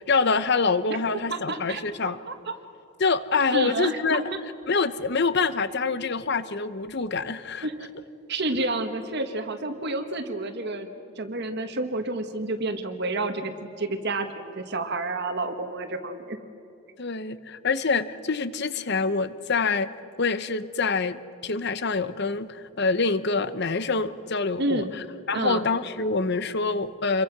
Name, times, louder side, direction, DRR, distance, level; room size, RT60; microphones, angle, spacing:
voice 1, 0.0-2.2 3.0-4.2 4.7-7.7 17.0-19.9 20.2-24.8 25.3-27.2, left 4 dB, 50° left, 14 dB, 1.0 m, -26 dB
voice 2, 1.3-2.5 3.5-4.2 7.6-7.9 8.3-10.9 11.2-16.4 24.6-24.9 25.3-25.6, right 2 dB, 50° right, 6 dB, 1.6 m, -30 dB
28.0 x 23.5 x 6.1 m, 2.8 s
head